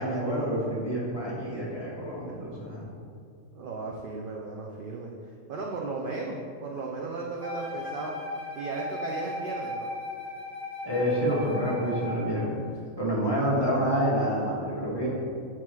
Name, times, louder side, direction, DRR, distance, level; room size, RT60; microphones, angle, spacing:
voice 1, 0.0-2.9 10.8-12.6 13.0-15.1, equal, 20° left, -7 dB, 1.3 m, -28 dB
voice 2, 3.5-5.1 5.5-8.1 8.6-9.9 13.3-13.8, right 3 dB, 65° right, -1 dB, 0.5 m, -36 dB
Wind instrument woodwind instrument, 7.4-12.4, left 1 dB, 30° right, 1.3 m, -37 dB
7.6 x 3.0 x 4.5 m, 2.3 s
omnidirectional pair, 1.5 m